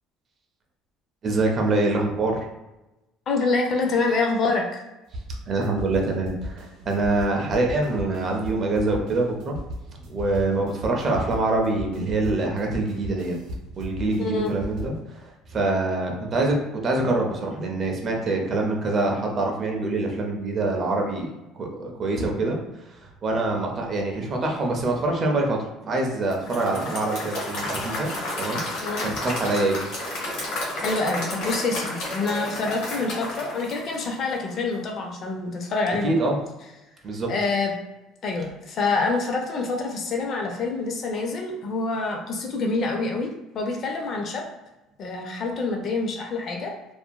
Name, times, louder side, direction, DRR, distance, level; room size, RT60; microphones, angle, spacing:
voice 1, 1.2-2.5 5.5-9.6 10.1-13.4 13.8-22.6 22.9-25.6 25.9-28.1 28.4-28.6 29.1-29.8 36.0-36.4 37.0-37.3, right 2 dB, 30° right, 1 dB, 0.5 m, -25 dB
voice 2, 3.3-4.8 14.2-14.5 28.8-29.1 30.7-36.1 37.3-37.7 38.2-44.5 45.0-46.7, left 3 dB, 35° left, 2 dB, 0.4 m, -26 dB
sound 1, 5.1-15.0, equal, 70° right, 0.7 m, -37 dB
Applause / Crowd, 26.3-34.5, left 1 dB, 60° left, 1.3 m, -31 dB
2.7 x 2.5 x 2.2 m, 1.0 s
cardioid pair, 165°, 0 cm